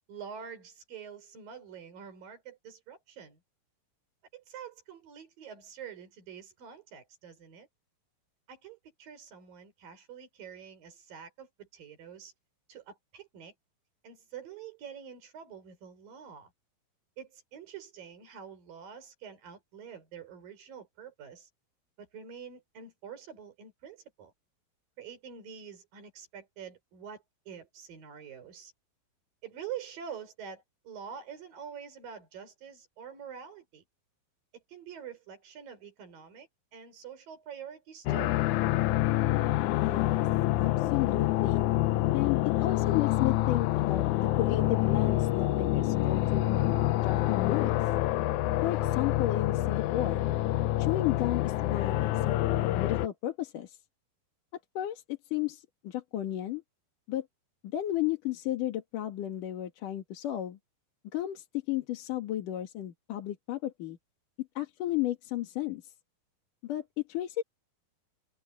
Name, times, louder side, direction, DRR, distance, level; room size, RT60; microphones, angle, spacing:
voice 1, 0.1-3.4 4.3-7.7 8.5-12.3 12.7-13.5 14.0-16.5 17.2-21.5 22.0-24.3 25.0-28.7 29.4-33.8 34.5-38.4, right 8 dB, 65° right, 6.6 m, -46 dB
sound 1, 38.1-53.1, left 15 dB, 85° left, 1.7 m, -27 dB
voice 2, 39.8-40.3 40.6-41.7 42.1-47.8 48.6-50.2 50.8-53.8 54.7-56.6 57.1-57.3 57.7-60.6 61.1-64.0 64.6-65.9 66.6-67.4, left 13 dB, 65° left, 3.1 m, -33 dB
omnidirectional pair, 4.2 m